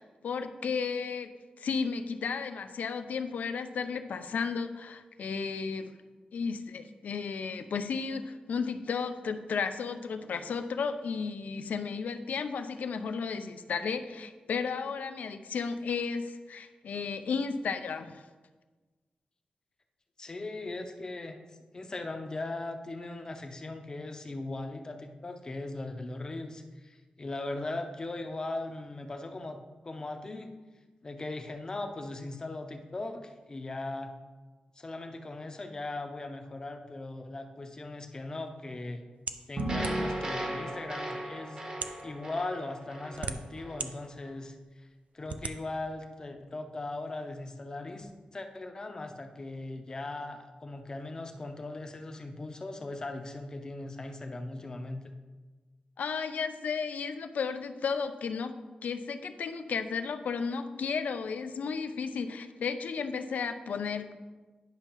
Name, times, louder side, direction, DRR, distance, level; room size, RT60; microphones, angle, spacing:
voice 1, 0.0-1.3 1.6-5.9 6.3-18.2 56.0-58.5 58.8-64.1, left 5 dB, 90° left, 9 dB, 0.5 m, -33 dB
voice 2, 20.2-21.4 21.7-29.6 29.8-30.5 31.0-34.1 34.8-39.0 39.5-41.6 42.0-44.9 45.1-55.0, left 2 dB, 30° left, 6 dB, 0.6 m, -39 dB
sound 1, 39.3-40.2 41.0-41.1 41.7-42.0 42.8-43.9 44.4-44.5 45.3-45.6, right 5 dB, 65° right, 0.4 m, -37 dB
sound 2, 39.6-43.9, right 1 dB, 35° right, 1.0 m, -35 dB
10.5 x 5.7 x 3.0 m, 1.3 s
wide cardioid pair, 165°, 3 cm